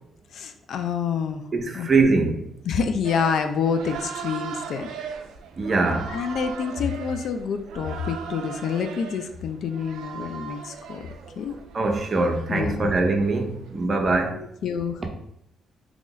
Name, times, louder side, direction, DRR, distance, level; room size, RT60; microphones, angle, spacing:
voice 1, 0.3-1.4 1.7-1.9 2.7-4.9 6.1-11.1 11.4-11.6 12.5-12.9 14.3-15.1, left 6 dB, 65° left, 8 dB, 0.4 m, -27 dB
voice 2, 1.5-2.5 5.6-6.2 11.7-14.4, right 3 dB, 40° right, 3 dB, 0.6 m, -22 dB
sound 1, 3.0-13.9, right 7 dB, 85° right, 0.4 m, -39 dB
2.9 x 2.5 x 3.9 m, 0.76 s
cardioid pair, 90°, 0 cm